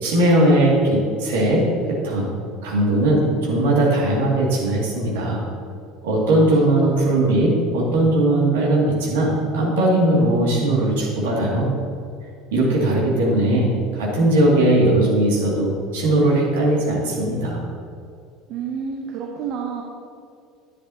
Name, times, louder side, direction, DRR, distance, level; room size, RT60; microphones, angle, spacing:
voice 1, 0.0-2.3 2.6-5.4 6.0-11.7 12.5-17.7, right 1 dB, 65° right, -3 dB, 2.3 m, -19 dB
voice 2, 6.3-6.9 18.5-19.8, right 6 dB, 50° right, 1 dB, 0.8 m, -30 dB
10.5 x 9.6 x 2.8 m, 2.4 s
figure-of-eight pair, 65°, 0 cm